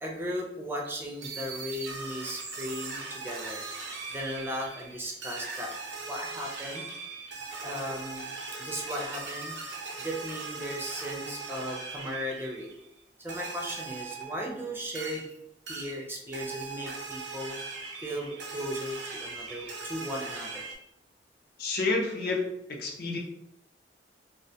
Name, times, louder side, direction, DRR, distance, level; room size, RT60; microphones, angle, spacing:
voice 1, 0.0-3.6 4.1-5.7 6.1-6.9 7.6-8.3 8.6-12.7 13.2-15.3 15.7-17.8 18.0-20.6, equal, 15° right, -1 dB, 0.4 m, -36 dB
sound 1, 0.8-12.9 13.3-15.3 15.7-16.0 16.3-20.7, right 4 dB, 85° right, 0.5 m, -40 dB
voice 2, 21.6-23.2, left 3 dB, 60° left, 1 dB, 0.5 m, -30 dB
2.4 x 2.1 x 2.7 m, 0.80 s
head